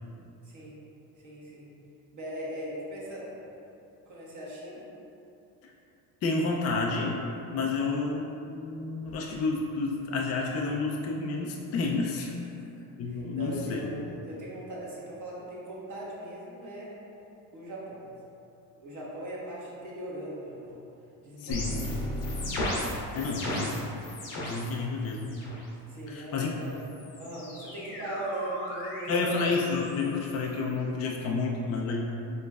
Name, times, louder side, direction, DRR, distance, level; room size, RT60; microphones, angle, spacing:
voice 1, 1.2-1.7 2.1-3.4 4.1-4.9 7.8-8.0 12.4-12.6 13.1-16.9 17.5-18.1 18.7-20.8 21.2-22.2 23.1-23.6 25.9-26.7 27.2-29.4, right 1 dB, 40° right, -6 dB, 1.3 m, -39 dB
voice 2, 6.2-7.2 7.5-12.3 13.0-13.9 21.4-21.8 22.9-23.8 24.4-25.4 26.1-26.6 29.1-32.0, left 3 dB, 35° left, -1 dB, 0.4 m, -30 dB
sound 1, 21.5-24.7 25.0-25.6 26.6-30.7, left 1 dB, 85° left, 1.2 m, -36 dB
5.3 x 3.1 x 2.3 m, 2.8 s
supercardioid pair, 85°, 45 cm